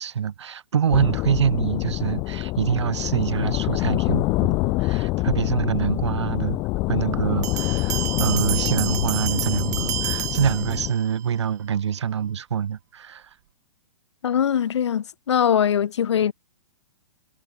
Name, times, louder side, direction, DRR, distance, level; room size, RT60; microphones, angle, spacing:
voice 1, 0.0-6.6 6.9-13.3, right 8 dB, 80° right, 2.4 m, -25 dB
sound 1, 0.9-10.9, left 23 dB, 20° left, 2.6 m, -26 dB
sound 2, 7.4-11.2, right 14 dB, 40° right, 4.1 m, -30 dB
voice 2, 14.2-16.3, left 8 dB, 80° left, 1.4 m, -21 dB
hypercardioid pair, 180°, 14 cm